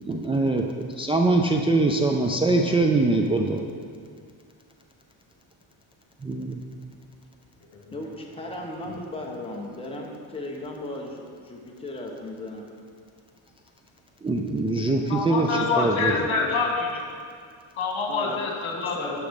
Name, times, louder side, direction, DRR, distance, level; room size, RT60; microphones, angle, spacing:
voice 1, 0.1-0.6 1.0-3.6 6.2-6.6 14.2-15.5 15.8-16.1, right 2 dB, 10° right, 1 dB, 0.4 m, -22 dB
voice 2, 7.9-12.7 15.5-16.5 18.1-18.4 18.7-19.3, left 1 dB, 10° left, -1 dB, 1.2 m, -36 dB
voice 3, 15.1-17.0 17.8-19.1, left 4 dB, 75° left, 1 dB, 1.9 m, -26 dB
11.5 x 6.1 x 5.3 m, 2.2 s
cardioid pair, 145°, 48 cm